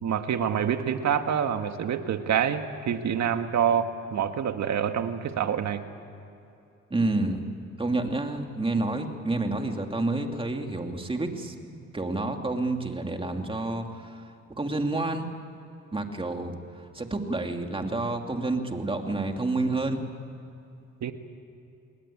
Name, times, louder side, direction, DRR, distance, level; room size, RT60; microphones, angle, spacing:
voice 1, 0.0-5.8 21.0-21.1, right 8 dB, 65° right, 7 dB, 1.8 m, -26 dB
voice 2, 6.9-7.4 7.8-14.2 14.6-15.3 15.9-20.0, right 2 dB, 20° right, 4 dB, 2.7 m, -29 dB
28.0 x 20.5 x 8.7 m, 2.7 s
cardioid pair, 90°, 30 cm